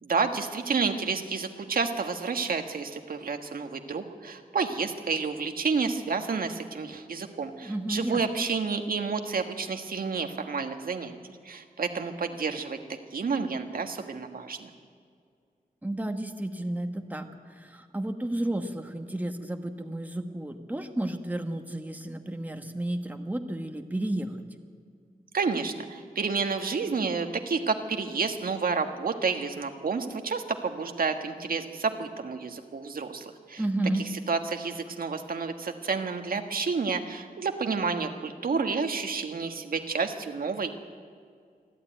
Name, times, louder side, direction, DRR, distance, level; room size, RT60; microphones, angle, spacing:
voice 1, 0.0-11.1 11.4-12.8 13.1-14.7 25.3-33.6 34.3-40.7, right 5 dB, 70° right, 5 dB, 1.5 m, -30 dB
voice 2, 7.6-8.5 15.8-24.4 33.6-34.1, right 1 dB, 10° right, 5 dB, 1.3 m, -32 dB
28.0 x 12.0 x 9.1 m, 2.1 s
wide cardioid pair, 120°, 16 cm